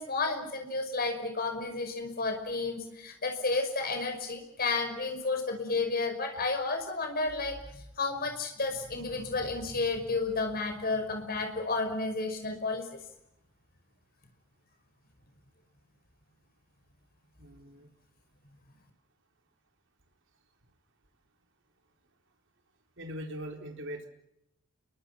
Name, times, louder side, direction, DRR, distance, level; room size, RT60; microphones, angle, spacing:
voice 1, 0.0-12.9, left 3 dB, 45° left, 5 dB, 5.6 m, -32 dB
voice 2, 17.4-17.9 23.0-24.1, equal, 60° right, 3 dB, 4.2 m, -41 dB
30.0 x 23.0 x 5.9 m, 0.82 s
head